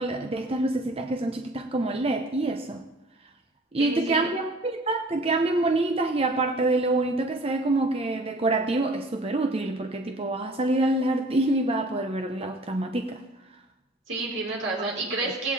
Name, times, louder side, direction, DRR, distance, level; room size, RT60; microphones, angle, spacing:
voice 1, 0.0-2.8 3.7-13.2, right 2 dB, 30° right, 5 dB, 0.9 m, -26 dB
voice 2, 3.8-4.2 14.1-15.5, right 3 dB, 70° right, -2 dB, 4.7 m, -29 dB
18.0 x 16.0 x 4.2 m, 0.98 s
head